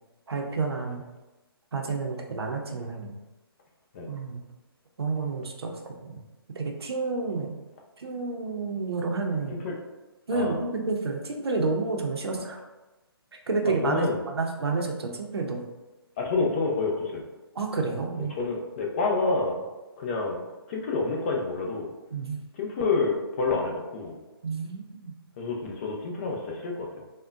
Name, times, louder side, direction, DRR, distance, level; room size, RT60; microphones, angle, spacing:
voice 1, 0.3-1.0 1.7-3.2 4.1-4.4 5.0-6.2 6.5-7.5 8.0-9.6 10.3-12.6 13.5-15.6 17.5-18.3 22.1-22.4 24.4-25.1, right 3 dB, 80° right, 2 dB, 0.6 m, -30 dB
voice 2, 13.8-14.2 16.2-17.2 18.3-19.6 20.0-20.4 20.7-21.9 22.6-24.2 25.4-26.9, left 3 dB, 30° left, 0 dB, 0.5 m, -28 dB
3.5 x 2.1 x 2.4 m, 1.1 s
hypercardioid pair, 150°, 13 cm